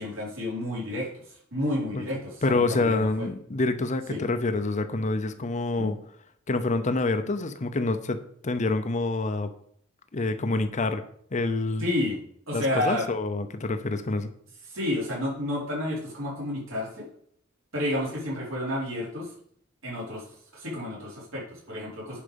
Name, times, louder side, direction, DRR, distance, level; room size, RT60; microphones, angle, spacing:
voice 1, 0.0-3.3 4.1-4.2 5.8-5.9 11.8-12.2 12.5-13.1 14.7-17.1 17.7-19.3 19.8-20.3 20.5-22.2, left 1 dB, 70° right, -5 dB, 4.7 m, -30 dB
voice 2, 2.4-6.0 6.5-9.5 10.1-11.0 11.3-11.8 12.5-14.3, left 2 dB, 35° left, 9 dB, 0.7 m, -27 dB
10.0 x 5.6 x 5.3 m, 0.65 s
head